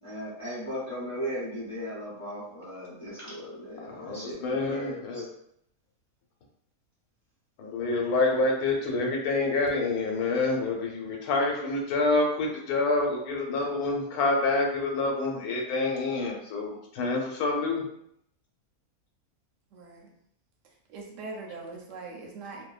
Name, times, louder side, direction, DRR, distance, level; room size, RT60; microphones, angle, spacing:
voice 1, 0.0-5.2 8.4-8.5, equal, 10° left, -9 dB, 1.0 m, -37 dB
voice 2, 3.8-5.3 7.6-17.8, left 3 dB, 85° left, 0 dB, 1.1 m, -27 dB
voice 3, 19.7-20.1 20.9-22.6, right 3 dB, 65° right, 0 dB, 0.8 m, -41 dB
2.6 x 2.1 x 2.3 m, 0.71 s
omnidirectional pair, 1.6 m